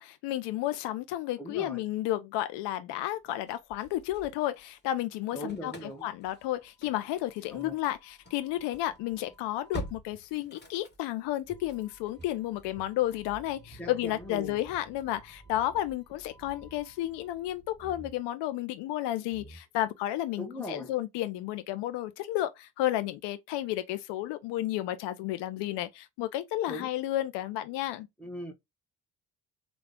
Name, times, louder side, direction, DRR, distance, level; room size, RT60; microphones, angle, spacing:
voice 1, 0.0-5.7 6.0-28.1, left 14 dB, 75° left, 0.6 m, -32 dB
voice 2, 1.4-1.8 5.3-6.1 7.5-7.7 13.8-14.6 20.4-20.9 26.7-26.9 28.2-28.5, left 1 dB, 5° left, 1.1 m, -39 dB
Engine starting / Slam, 3.5-4.9 5.1-18.2, equal, 25° left, 1.6 m, -49 dB
sound 1, 11.5-13.9 14.2-14.3 14.6-14.9 15.4-15.9 16.3-16.8 17.8-18.2 18.9-19.0 19.3-19.9, right 3 dB, 20° right, 0.7 m, -52 dB
3.7 x 2.4 x 3.4 m
hypercardioid pair, 45°, 43 cm